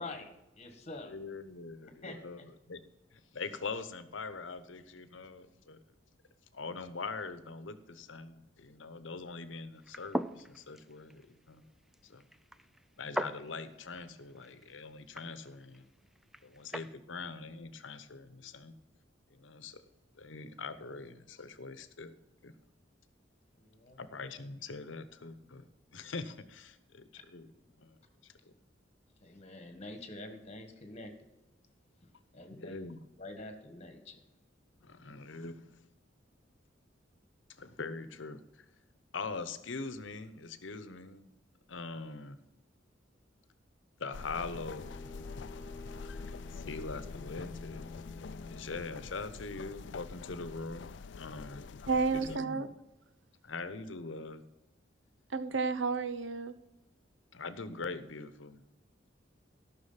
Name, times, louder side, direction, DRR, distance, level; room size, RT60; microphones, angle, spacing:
voice 1, 0.0-1.1 2.0-2.4 23.6-24.0 29.2-31.1 32.3-32.9 33.2-34.2, left 2 dB, 35° left, 7 dB, 1.6 m, -46 dB
voice 2, 1.1-2.8 3.1-5.8 6.5-11.6 12.0-12.2 13.0-15.9 16.4-18.7 19.3-19.8 20.2-22.2 22.4-22.5 24.0-27.5 27.8-28.0 28.2-28.3 32.5-33.1 34.8-35.7 37.6-38.4 39.1-41.3 41.7-42.4 44.0-45.0 46.5-47.9 48.5-51.6 52.1-52.7 53.4-54.4 57.3-58.6, left 4 dB, 85° left, 12 dB, 0.9 m, -43 dB
sound 1, 9.8-16.9, equal, ahead, 0.4 m, -42 dB
sound 2, 44.1-52.4, left 4 dB, 70° left, 0.4 m, -45 dB
Bowed string instrument, 44.5-49.4, left 2 dB, 15° left, 0.7 m, -50 dB
voice 3, 51.9-52.7 55.3-56.5, right 4 dB, 75° right, 12 dB, 0.7 m, -31 dB
13.0 x 6.2 x 5.7 m, 0.98 s
head